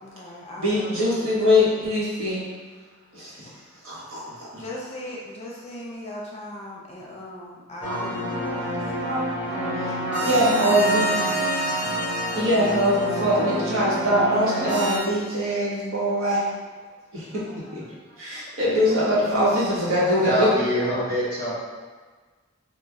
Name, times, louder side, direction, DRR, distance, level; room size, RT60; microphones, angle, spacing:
voice 1, 0.0-1.3 3.2-3.3 4.2-4.3 4.6-11.9 17.3-17.6 18.3-19.0 20.2-21.3, left 1 dB, 30° left, -4 dB, 0.5 m, -38 dB
voice 2, 0.6-2.4 3.1-3.5 3.8-4.6 7.8-8.0 9.0-9.3 10.1-11.0 12.3-16.4 17.1-17.8 18.2-20.5, equal, 75° right, -7 dB, 1.1 m, -23 dB
sound 1, 7.8-15.0, right 1 dB, 5° right, 0.8 m, -27 dB
voice 3, 20.2-21.5, equal, 50° right, -8 dB, 1.1 m, -25 dB
3.1 x 2.1 x 3.6 m, 1.4 s
head